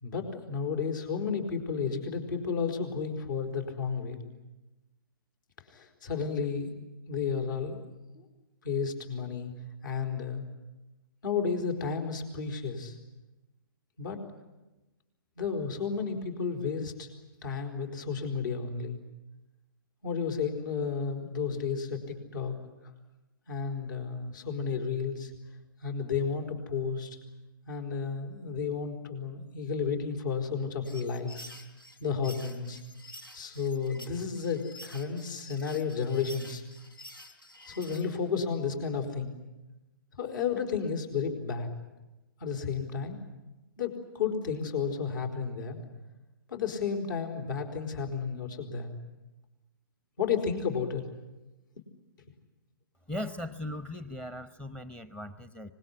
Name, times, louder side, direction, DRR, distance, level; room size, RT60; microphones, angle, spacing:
voice 1, 0.0-4.2 5.7-6.8 7.1-7.8 8.1-8.3 8.6-9.5 9.8-10.4 11.2-12.9 14.0-14.2 15.4-17.1 17.4-19.0 20.0-22.5 23.5-25.3 25.8-27.2 27.7-31.5 32.0-32.8 33.3-36.6 37.7-39.3 40.2-41.7 42.4-43.2 43.8-45.8 46.5-48.9 50.2-51.1, left 6 dB, 60° left, 5 dB, 4.6 m, -32 dB
sound 1, 30.8-38.1, left 1 dB, 85° left, 3.6 m, -49 dB
voice 2, 53.1-55.7, left 1 dB, 10° left, 13 dB, 0.9 m, -38 dB
25.5 x 20.0 x 9.8 m, 1.0 s
figure-of-eight pair, 125°, 12 cm